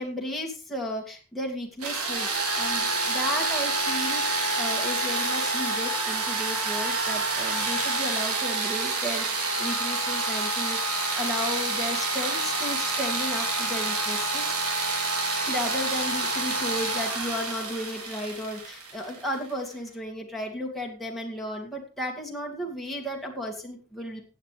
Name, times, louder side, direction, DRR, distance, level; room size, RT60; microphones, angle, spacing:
voice 1, 0.0-14.5 15.5-24.2, equal, ahead, -1 dB, 2.2 m, -34 dB
sound 1, 1.8-19.5, right 3 dB, 90° right, 3.3 m, -28 dB
15.0 x 8.8 x 3.3 m, 0.35 s
head